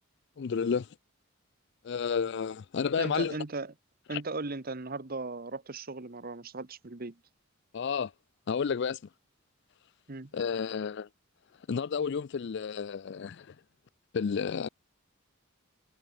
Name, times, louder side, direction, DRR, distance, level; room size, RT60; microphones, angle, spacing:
voice 1, 0.4-0.9 1.8-3.4 4.1-4.2 7.7-8.1 8.5-9.0 10.3-11.1 11.7-13.5 14.1-14.7, left 6 dB, 55° left, 0.4 m, -31 dB
voice 2, 3.0-3.7 4.1-7.2 10.1-10.3, right 3 dB, 45° right, 1.1 m, -37 dB
head